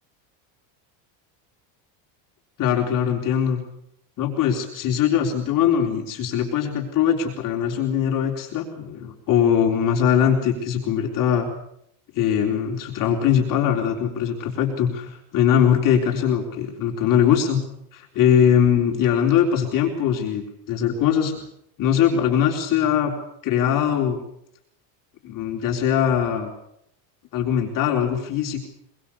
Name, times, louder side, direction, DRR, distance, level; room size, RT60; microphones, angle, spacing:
voice 1, 2.6-3.6 4.2-11.5 12.1-17.6 17.9-21.4 21.8-23.1 23.4-24.2 25.2-26.5 27.3-28.7, left 8 dB, 45° left, 2 dB, 3.9 m, -21 dB
24.5 x 23.0 x 7.1 m, 0.73 s
cardioid pair, 145°, 46 cm